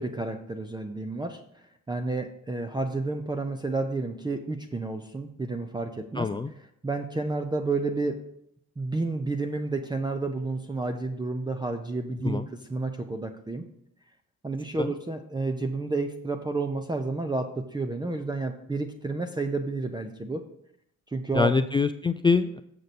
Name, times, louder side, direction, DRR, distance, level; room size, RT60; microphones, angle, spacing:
voice 1, 0.0-1.4 1.9-6.3 6.8-8.2 8.8-13.6 14.4-20.4 21.1-21.5, right 3 dB, 15° right, 6 dB, 0.6 m, -30 dB
voice 2, 6.2-6.5 12.2-12.5 14.8-14.9 21.3-22.6, left 4 dB, 15° left, 9 dB, 0.3 m, -24 dB
7.6 x 6.8 x 4.2 m, 0.75 s
cardioid pair, 90°, 30 cm